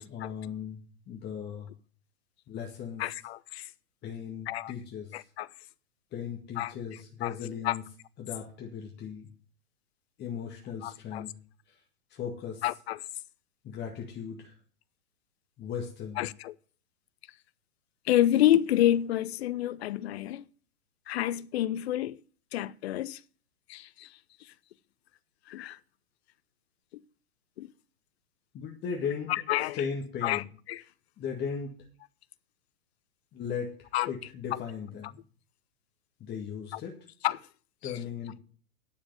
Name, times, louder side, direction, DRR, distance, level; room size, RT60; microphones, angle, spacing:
voice 1, 0.0-1.7 2.5-3.0 4.0-5.2 6.1-7.8 8.2-9.3 10.2-11.3 11.7-11.8 12.1-12.6 13.6-14.6 15.6-16.2 28.5-29.3 29.7-30.5 31.2-31.7 33.3-33.7 34.1-35.2 36.2-36.9 37.8-38.4, left 7 dB, 25° left, 1.9 m, -37 dB
voice 2, 3.0-3.7 4.5-4.7 5.1-5.5 6.6-6.7 7.2-7.3 7.6-7.7 10.8-11.2 12.6-13.0 16.2-16.5 18.1-20.4 21.1-22.2 22.5-23.2 23.7-24.1 25.5-25.8 27.6-27.7 29.3-29.8 30.2-30.4 30.7-30.8 33.9-34.1 34.5-34.6 36.7-36.8 37.2-37.4 37.8-37.9, left 13 dB, 45° left, 0.6 m, -28 dB
9.7 x 6.9 x 8.1 m
hypercardioid pair, 120°, 44 cm